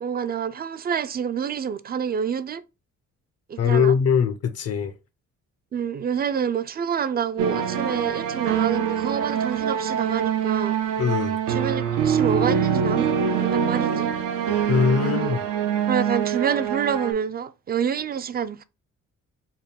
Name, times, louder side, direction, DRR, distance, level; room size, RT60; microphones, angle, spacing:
voice 1, 0.0-2.6 3.5-3.9 5.7-10.8 11.5-14.1 15.0-15.4 15.9-18.6, right 7 dB, 30° right, 0.4 m, -27 dB
voice 2, 3.6-4.9 11.0-11.4 14.7-15.4, left 7 dB, 55° left, 0.6 m, -21 dB
sound 1, 7.4-17.1, right 8 dB, 90° right, 0.7 m, -24 dB
3.6 x 2.2 x 4.1 m
cardioid pair, 90°, 30 cm